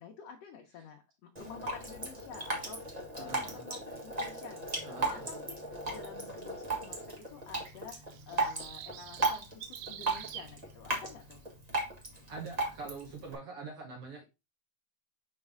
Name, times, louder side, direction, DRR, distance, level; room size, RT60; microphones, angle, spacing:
voice 1, 0.0-11.4, left 6 dB, 70° left, 1.8 m, -50 dB
Drip, 1.3-13.3, right 2 dB, 40° right, 0.5 m, -36 dB
voice 2, 3.2-3.7 4.9-5.3 12.3-14.3, right 4 dB, 60° right, 1.8 m, -44 dB
sound 1, 7.0-10.7, right 10 dB, 75° right, 1.7 m, -47 dB
5.6 x 5.3 x 3.5 m
omnidirectional pair, 3.4 m